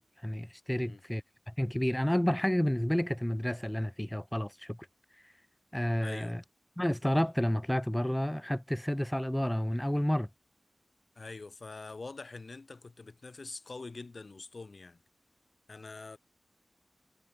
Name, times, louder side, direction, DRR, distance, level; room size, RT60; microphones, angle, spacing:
voice 1, 0.0-4.8 5.7-6.4 6.8-10.3, equal, 10° left, 1.8 m, -30 dB
voice 2, 6.0-6.4 11.2-15.0 15.7-16.2, left 3 dB, 60° left, 6.1 m, -45 dB
wide cardioid pair, 55°, 0 cm